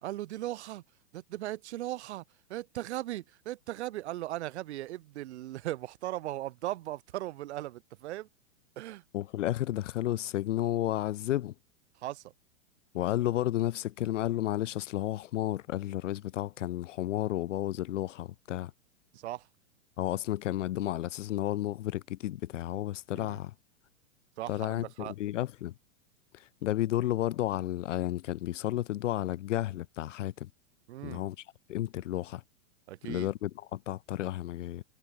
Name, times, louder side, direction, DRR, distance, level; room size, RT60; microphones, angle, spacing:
voice 1, 0.0-0.8 1.1-2.2 2.5-8.3 8.8-9.0 12.0-12.2 19.1-19.5 23.1-23.4 24.4-25.1 30.9-31.2 32.9-33.3, right 15 dB, 60° right, 2.2 m, -38 dB
voice 2, 9.1-11.5 12.9-18.7 20.0-23.5 24.5-25.7 26.3-30.5 31.0-32.4 33.1-34.8, left 14 dB, 70° left, 0.9 m, -32 dB
hypercardioid pair, 145°, 38 cm